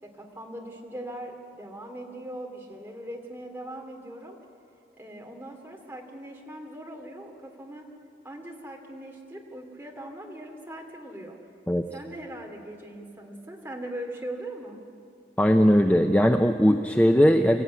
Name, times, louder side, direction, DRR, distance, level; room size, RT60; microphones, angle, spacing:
voice 1, 0.0-4.4 5.0-7.9 8.2-11.4 11.9-14.8, right 1 dB, 10° right, 0 dB, 2.5 m, -40 dB
voice 2, 15.4-17.6, equal, 10° left, 5 dB, 0.6 m, -19 dB
26.5 x 14.5 x 9.5 m, 2.6 s
head